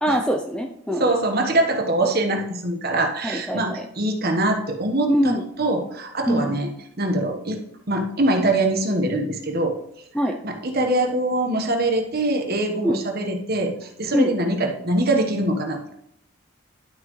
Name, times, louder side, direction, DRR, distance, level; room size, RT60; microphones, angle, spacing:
voice 1, 0.0-1.1 3.2-3.8 5.1-5.5 6.3-6.6 10.1-10.4 12.8-13.0 14.1-14.3, equal, 5° left, 3 dB, 0.5 m, -23 dB
voice 2, 0.9-6.7 7.0-7.6 7.9-9.7 10.4-15.9, right 1 dB, 45° right, 3 dB, 1.2 m, -23 dB
11.5 x 5.9 x 3.2 m, 0.77 s
head